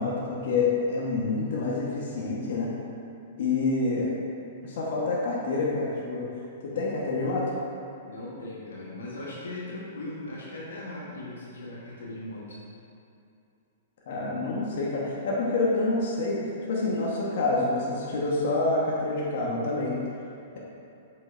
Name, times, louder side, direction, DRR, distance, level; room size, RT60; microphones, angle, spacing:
voice 1, 0.0-2.7 3.4-4.1 4.6-6.3 6.6-7.4 14.1-16.4 16.7-20.0, left 3 dB, 65° left, -5 dB, 1.4 m, -27 dB
voice 2, 8.0-12.6, left 2 dB, 85° left, -5 dB, 1.4 m, -39 dB
7.5 x 5.5 x 2.7 m, 2.6 s
hypercardioid pair, 125°, 0 cm